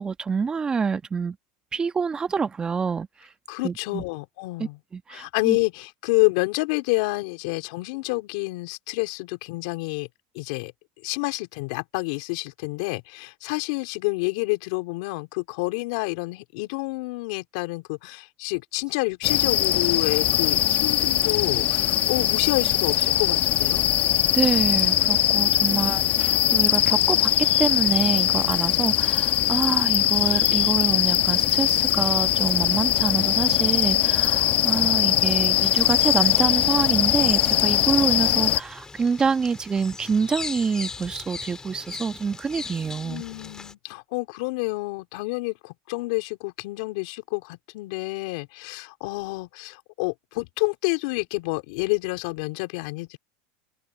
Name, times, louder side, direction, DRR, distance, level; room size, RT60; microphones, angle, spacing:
voice 1, 0.0-1.4 1.7-3.3 3.6-4.0 4.9-5.6 24.3-27.3 27.6-43.2, right 5 dB, 20° right, 1.3 m, -26 dB
voice 2, 3.5-4.8 5.1-10.1 10.3-10.7 11.0-23.8 25.7-26.1 43.0-53.2, left 26 dB, 70° left, 3.7 m, -28 dB
sound 1, 19.2-38.6, left 12 dB, 45° left, 1.2 m, -21 dB
Bird vocalization bird call bird song, 35.5-43.7, left 4 dB, 15° left, 3.8 m, -40 dB
open air
supercardioid pair, 115°, 4 cm